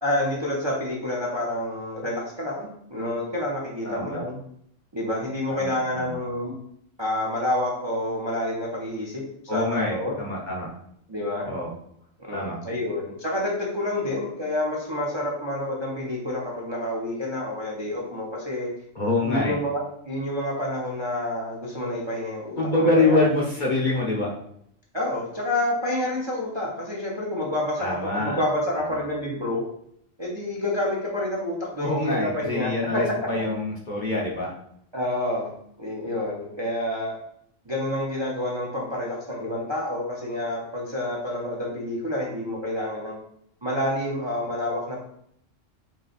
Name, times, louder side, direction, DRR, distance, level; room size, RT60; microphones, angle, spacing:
voice 1, 0.0-4.4 4.9-6.5 7.0-10.1 11.1-11.5 12.3-18.7 19.2-23.3 24.9-29.6 30.2-33.0 34.9-35.5 35.8-37.1 37.7-43.2 43.6-45.0, left 1 dB, 30° right, -4 dB, 0.6 m, -28 dB
voice 2, 3.8-4.2 5.5-6.2 9.5-10.7 11.4-11.7 12.3-12.6 18.9-19.5 22.6-24.3 27.8-28.4 28.8-28.9 31.8-34.5, left 2 dB, 45° left, -3 dB, 0.8 m, -25 dB
3.3 x 3.2 x 3.9 m, 0.71 s
omnidirectional pair, 1.3 m